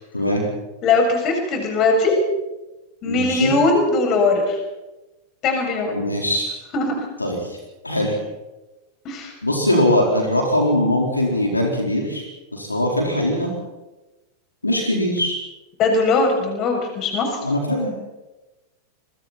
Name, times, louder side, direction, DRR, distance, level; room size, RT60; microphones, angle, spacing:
voice 1, 0.8-2.1 3.0-4.6 5.4-6.0 6.7-7.1 9.0-9.3 15.8-17.4, left 3 dB, 35° left, 2 dB, 7.5 m, -20 dB
voice 2, 3.0-3.5 5.9-6.6 7.2-7.6 7.8-8.2 9.4-12.2 12.5-13.5 14.6-15.4 17.4-17.9, left 1 dB, 85° left, 0 dB, 4.3 m, -21 dB
29.5 x 22.5 x 4.4 m, 1.0 s
figure-of-eight pair, 90°, 0 cm